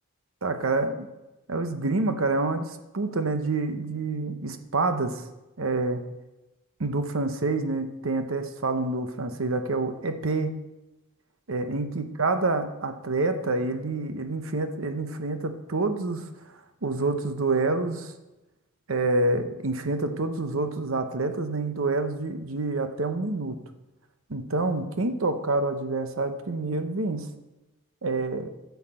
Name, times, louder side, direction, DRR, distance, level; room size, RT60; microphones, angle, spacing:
voice 1, 0.4-1.1 1.5-5.2 5.6-6.0 6.8-10.5 11.5-16.3 16.8-18.1 18.9-23.6 24.3-27.3 28.0-28.5, right 3 dB, 80° right, 8 dB, 0.9 m, -27 dB
10.0 x 5.9 x 7.4 m, 1.0 s
head